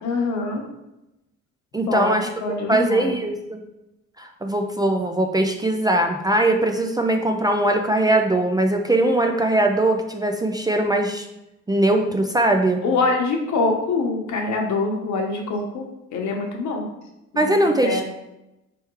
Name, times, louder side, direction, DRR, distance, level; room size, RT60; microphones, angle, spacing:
voice 1, 0.0-0.6 1.9-3.1 12.8-15.8 16.1-16.9 17.3-17.5 17.8-18.0, left 3 dB, 70° left, 1 dB, 1.0 m, -24 dB
voice 2, 1.7-2.3 2.7-3.6 4.2-11.3 11.7-12.8 17.3-18.0, right 1 dB, 15° right, 3 dB, 0.4 m, -20 dB
4.4 x 3.5 x 3.1 m, 0.92 s
cardioid pair, 90°, 30 cm